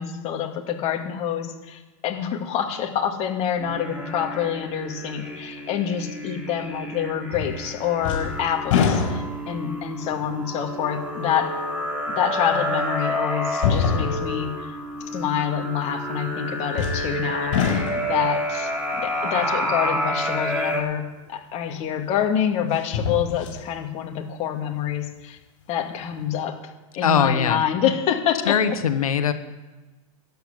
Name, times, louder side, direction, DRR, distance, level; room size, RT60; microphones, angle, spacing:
voice 1, 0.0-11.5 12.1-14.8 15.1-18.7 19.0-25.4 25.7-26.6 27.0-28.6, left 9 dB, 35° left, 3 dB, 2.2 m, -27 dB
sound 1, 3.6-20.8, equal, 5° right, 3.3 m, -29 dB
sound 2, 7.3-7.7 8.0-9.6 10.2-10.3 12.2-12.3 13.5-14.4 16.7-17.2 17.5-18.2 21.2-21.3 22.7-23.6 24.1-24.2, left 6 dB, 55° left, 5.1 m, -24 dB
voice 2, 27.0-27.6 28.4-29.3, left 7 dB, 85° left, 9 dB, 1.4 m, -21 dB
13.0 x 8.0 x 9.2 m, 1.2 s
hypercardioid pair, 125°, 18 cm